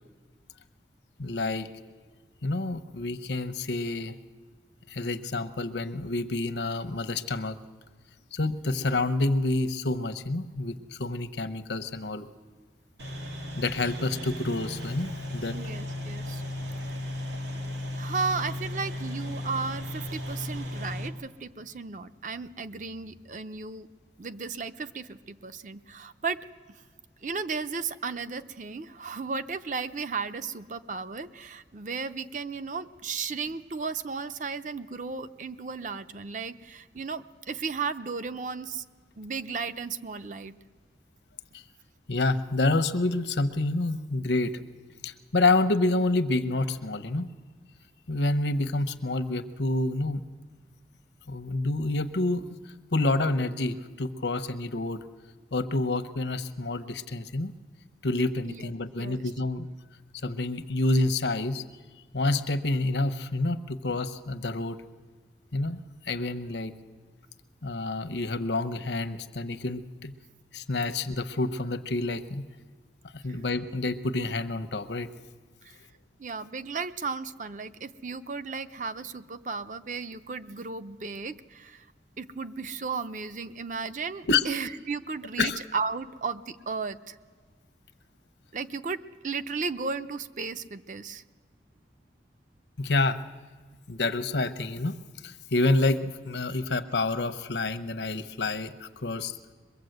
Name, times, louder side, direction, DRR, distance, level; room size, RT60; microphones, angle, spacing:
voice 1, 1.2-1.7 2.4-4.1 4.9-7.6 8.3-12.3 13.6-15.6 41.5-41.6 42.1-44.5 45.0-47.3 48.1-50.3 51.3-52.5 52.9-55.0 55.5-57.5 58.0-59.7 60.2-61.6 62.1-64.8 65.5-66.7 67.6-70.1 70.5-72.4 73.1-75.1 84.3-84.5 85.4-85.6 92.8-93.2 93.9-95.0 95.2-99.4, left 2 dB, 80° left, 10 dB, 1.0 m, -28 dB
sound 1, 13.0-21.1, left 1 dB, 90° right, 2.5 m, -35 dB
voice 2, 15.5-16.4 16.9-17.0 17.9-23.9 24.2-26.8 27.2-38.8 39.2-40.6 58.4-58.7 59.0-59.2 73.3-73.4 75.6-75.8 76.2-81.9 82.2-87.2 88.5-91.2, right 4 dB, 45° right, 11 dB, 0.7 m, -35 dB
22.5 x 22.5 x 7.9 m, 1.5 s
head